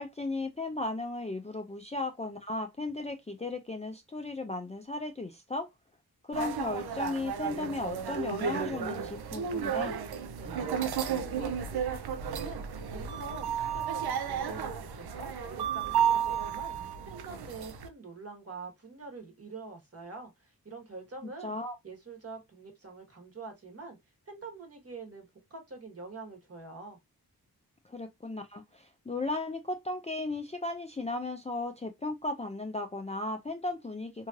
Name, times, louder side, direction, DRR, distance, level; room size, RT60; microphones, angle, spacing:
voice 1, 0.0-5.7 6.3-10.0 21.4-21.8 27.9-34.3, left 2 dB, 20° left, 0.5 m, -35 dB
sound 1, 6.3-17.9, right 8 dB, 90° right, 0.5 m, -33 dB
voice 2, 10.4-21.5 21.8-24.0 24.2-27.0, right 3 dB, 40° right, 1.3 m, -45 dB
3.1 x 2.7 x 2.4 m
wide cardioid pair, 70°, 37 cm